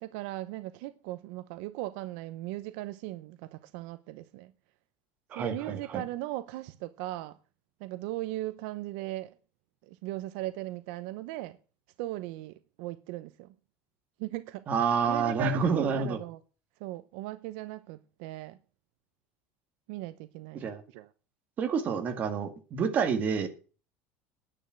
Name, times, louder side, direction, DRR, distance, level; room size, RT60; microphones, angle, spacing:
voice 1, 0.0-4.5 5.3-7.4 7.8-9.4 9.8-11.6 12.0-13.5 14.2-14.7 15.1-16.4 16.8-18.6 19.9-21.1, right 17 dB, 65° right, 0.8 m, -38 dB
voice 2, 5.3-6.0 14.7-16.2 20.5-20.8 21.6-23.5, right 5 dB, 25° right, 1.9 m, -28 dB
10.0 x 9.0 x 7.6 m
cardioid pair, 175°, 6 cm